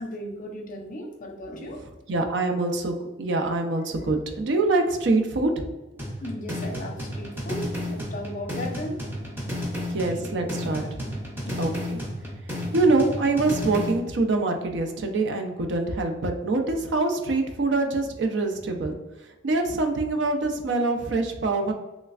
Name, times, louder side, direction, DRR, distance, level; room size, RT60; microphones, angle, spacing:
voice 1, 0.0-1.8 6.2-9.0 9.3-9.4 10.1-10.5 10.8-11.2 11.4-11.6, left 1 dB, 45° left, 2 dB, 0.5 m, -36 dB
voice 2, 2.1-5.7 9.9-10.8 11.6-12.0 12.7-19.0 19.4-21.7, right 3 dB, 65° right, 4 dB, 0.5 m, -24 dB
sound 1, 6.0-14.0, left 1 dB, 10° right, 0.6 m, -32 dB
3.2 x 3.1 x 2.4 m, 1.1 s
head